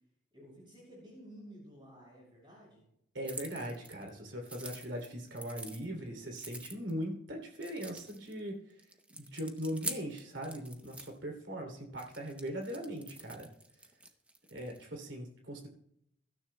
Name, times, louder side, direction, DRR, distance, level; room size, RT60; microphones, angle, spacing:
voice 1, 0.3-2.9, equal, 25° right, -4 dB, 6.3 m, -53 dB
voice 2, 3.1-8.6 9.1-13.5 14.5-15.7, equal, 75° right, 1 dB, 2.8 m, -40 dB
sound 1, 3.2-4.1 4.4-5.8 6.3-7.0 7.5-8.4 8.8-11.1 12.0-14.9, right 2 dB, 5° right, 0.6 m, -45 dB
22.5 x 12.5 x 2.2 m, 0.74 s
head